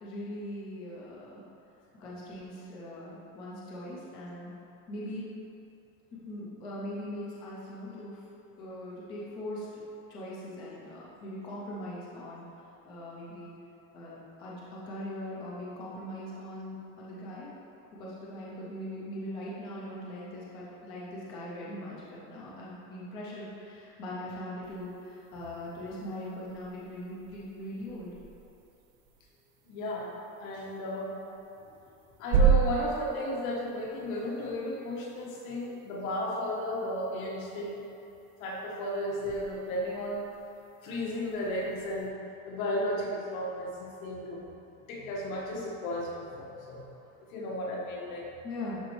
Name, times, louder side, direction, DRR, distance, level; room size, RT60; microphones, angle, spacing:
voice 1, 0.0-1.4 2.0-4.5 4.9-5.3 6.3-8.2 8.6-9.8 10.1-12.4 12.9-13.5 13.9-17.5 17.9-28.1 31.8-31.9 35.6-35.7 48.4-48.8, left 1 dB, 15° left, -6 dB, 0.3 m, -41 dB
sound 1, 24.6-42.1, right 6 dB, 45° right, 0.6 m, -35 dB
voice 2, 29.6-30.1 30.4-31.2 32.2-37.8 38.4-40.3 40.8-42.2 42.5-44.5 44.9-46.9 47.3-48.3, left 1 dB, 75° left, -3 dB, 1.5 m, -34 dB
11.0 x 3.9 x 3.1 m, 2.8 s
supercardioid pair, 175°, 41 cm